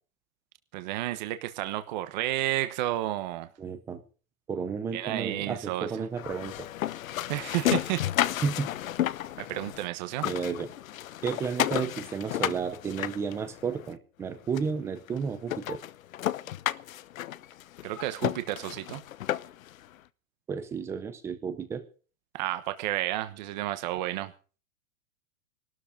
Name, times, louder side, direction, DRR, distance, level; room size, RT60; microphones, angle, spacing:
voice 1, 0.7-3.5 4.9-6.1 7.3-8.1 9.4-10.3 17.8-19.0 22.3-24.3, right 15 dB, 35° right, 11 dB, 1.2 m, -31 dB
voice 2, 3.6-4.0 4.5-6.7 8.4-8.7 10.2-10.7 11.2-15.8 20.5-21.8, right 6 dB, 5° right, 11 dB, 0.7 m, -32 dB
sound 1, 6.2-9.9 10.1-13.9 14.6-14.7 15.1-15.2 15.5-19.7, left 13 dB, 80° left, 1.0 m, -32 dB
20.0 x 13.0 x 5.1 m, 0.39 s
supercardioid pair, 175°, 41 cm